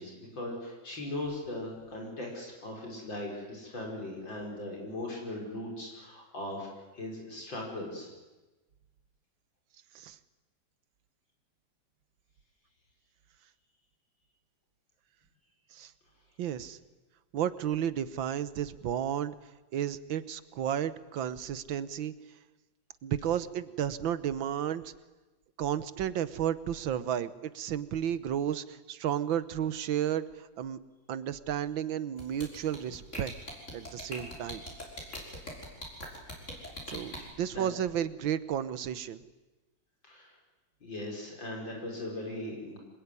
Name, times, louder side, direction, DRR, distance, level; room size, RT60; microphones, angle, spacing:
voice 1, 0.0-6.7 6.9-8.1 37.2-37.3 37.5-37.6 40.0-40.4 40.8-42.8, left 1 dB, 75° left, -1 dB, 5.9 m, -39 dB
voice 2, 16.4-16.8 17.3-19.4 19.7-22.1 23.0-24.9 25.6-30.8 31.1-33.3 33.7-34.6 36.9-39.2, right 10 dB, 85° right, 14 dB, 1.8 m, -32 dB
sound 1, 32.2-37.2, left 1 dB, 35° left, 6.5 m, -40 dB
26.5 x 21.0 x 9.8 m, 1.1 s
omnidirectional pair, 2.1 m